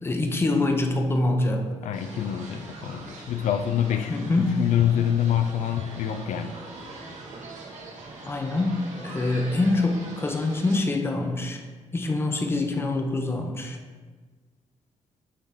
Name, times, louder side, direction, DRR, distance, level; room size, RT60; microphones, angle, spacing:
voice 1, 0.0-1.7 4.1-4.6 8.3-11.6 11.9-13.8, left 2 dB, 20° left, 4 dB, 0.6 m, -25 dB
voice 2, 1.8-4.2 4.6-6.6, left 9 dB, 85° left, 9 dB, 0.4 m, -25 dB
sound 1, 1.9-10.8, right 2 dB, 75° right, 1.3 m, -42 dB
9.6 x 3.4 x 3.6 m, 1.4 s
wide cardioid pair, 135°, 12 cm